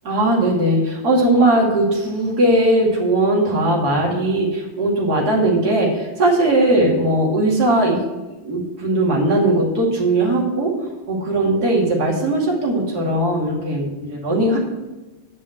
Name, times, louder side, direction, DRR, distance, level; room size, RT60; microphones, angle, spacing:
voice 1, 0.0-8.0 8.4-10.7 11.1-14.6, right 1 dB, 55° right, -3 dB, 2.9 m, -18 dB
9.7 x 5.5 x 7.7 m, 1.1 s
omnidirectional pair, 2.1 m